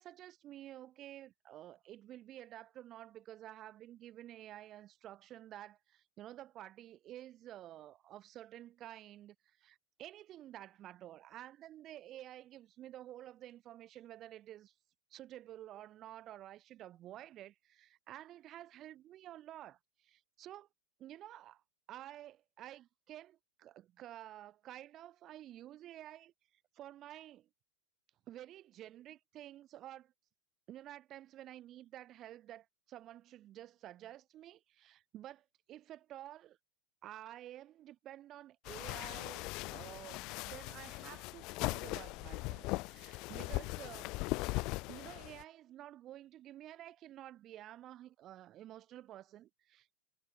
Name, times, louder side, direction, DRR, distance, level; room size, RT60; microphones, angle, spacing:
voice 1, 0.0-14.7 15.1-20.7 21.0-21.6 21.9-26.3 26.7-27.5 28.3-30.1 30.7-36.6 37.0-44.2 44.9-50.0, right 13 dB, 30° right, 7.5 m, -51 dB
sound 1, 38.7-45.4, left 24 dB, 40° left, 1.5 m, -39 dB
figure-of-eight pair, 90°, 0 cm